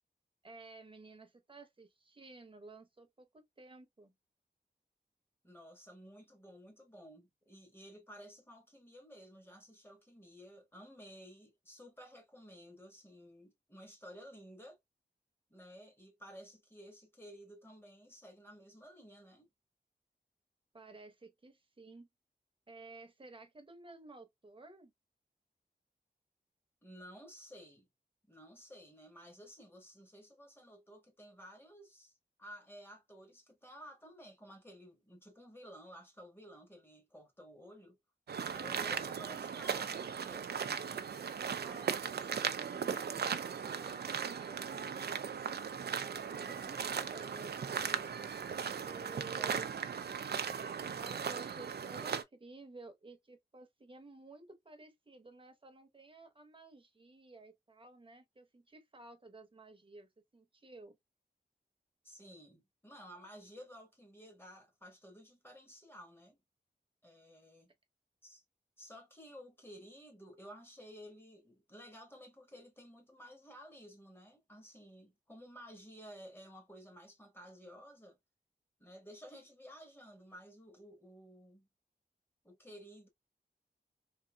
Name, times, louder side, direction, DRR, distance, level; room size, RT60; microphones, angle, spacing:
voice 1, 0.4-4.1 20.7-22.1 22.7-24.9 41.5-44.9 46.0-48.1 48.8-49.9 50.9-61.0, right 3 dB, 30° right, 0.9 m, -54 dB
voice 2, 5.4-14.8 15.5-19.5 26.8-27.9 28.3-38.0 38.5-40.5 49.4-49.7 62.0-66.4 67.0-67.7 68.2-68.4 68.8-78.2 78.8-81.7 82.4-83.1, equal, 15° left, 1.2 m, -54 dB
sound 1, 38.3-52.2, right 7 dB, 70° right, 0.4 m, -38 dB
3.5 x 2.7 x 2.2 m
wide cardioid pair, 85°, 17 cm